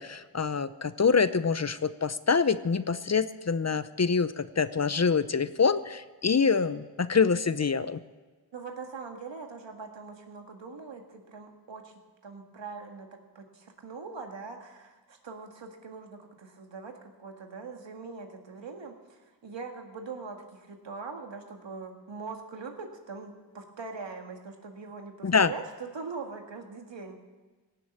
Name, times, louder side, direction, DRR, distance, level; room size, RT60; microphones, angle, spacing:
voice 1, 0.0-8.0 25.2-25.5, left 5 dB, 35° left, 14 dB, 0.7 m, -25 dB
voice 2, 8.5-11.9 12.2-27.2, right 4 dB, 80° right, 4 dB, 1.9 m, -42 dB
17.0 x 7.6 x 9.0 m, 1.3 s
cardioid pair, 50°, 44 cm